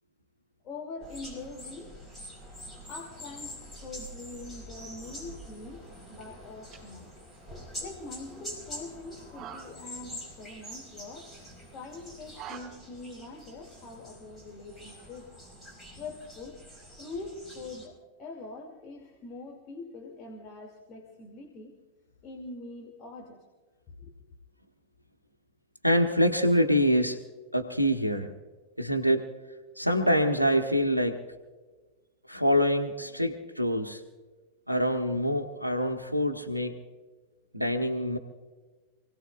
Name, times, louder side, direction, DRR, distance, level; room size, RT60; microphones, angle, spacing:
voice 1, 0.6-2.0 2.9-7.1 7.8-11.3 11.7-15.3 16.0-16.6 17.0-21.8 22.2-23.4 23.9-24.1, left 3 dB, 35° left, 1 dB, 2.4 m, -43 dB
sound 1, 1.0-17.9, equal, 10° left, 6.2 m, -45 dB
sound 2, 6.4-12.6, right 9 dB, 30° right, 4.6 m, -50 dB
voice 2, 25.8-27.2 27.5-28.3 28.8-29.3 29.8-31.2 32.3-34.0 34.7-36.8 37.5-38.2, equal, 90° right, 3 dB, 1.0 m, -25 dB
28.0 x 17.5 x 2.4 m, 1.3 s
figure-of-eight pair, 90°, 0 cm